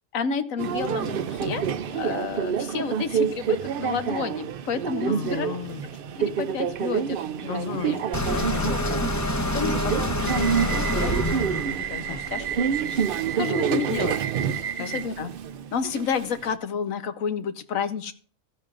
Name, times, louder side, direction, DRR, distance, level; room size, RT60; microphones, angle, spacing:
voice 1, 0.1-1.6 1.9-5.5 6.2-7.2 7.7-8.0 8.7-8.8 9.5-11.1 11.4-12.4 13.0-13.2 13.9-14.0 14.8-15.3 15.7-18.1, left 6 dB, 75° left, 10 dB, 1.2 m, -31 dB
Subway metro underground, 0.6-16.5, right 8 dB, 60° right, 0.6 m, -28 dB
voice 2, 5.1-5.8 7.5-8.0 8.3-8.8 12.1-12.5 12.9-13.0 13.4-14.2 14.6-15.0, left 8 dB, 55° left, 12 dB, 0.7 m, -33 dB
sound 1, 8.1-13.1, left 1 dB, 15° left, 0.6 m, -27 dB
14.5 x 9.8 x 2.5 m, 0.42 s
omnidirectional pair, 1.4 m